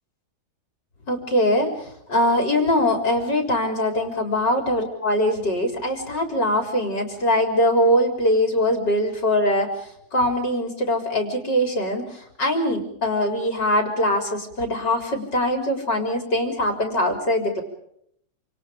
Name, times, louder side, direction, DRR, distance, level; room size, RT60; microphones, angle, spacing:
voice 1, 1.1-17.6, left 1 dB, 75° left, 3 dB, 4.7 m, -22 dB
28.5 x 27.5 x 5.2 m, 0.72 s
omnidirectional pair, 1.9 m